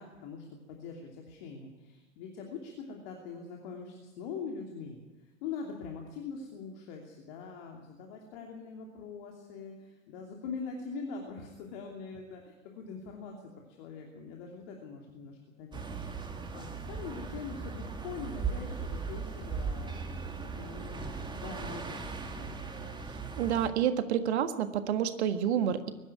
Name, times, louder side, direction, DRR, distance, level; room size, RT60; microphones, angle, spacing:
voice 1, 0.0-13.4 13.8-15.8 16.2-22.8, left 5 dB, 45° left, 1 dB, 2.9 m, -43 dB
sound 1, 15.7-23.7, right 5 dB, 10° right, 2.0 m, -38 dB
voice 2, 23.4-25.9, right 9 dB, 55° right, 9 dB, 1.7 m, -29 dB
22.5 x 12.0 x 9.7 m, 1.2 s
figure-of-eight pair, 90°, 39 cm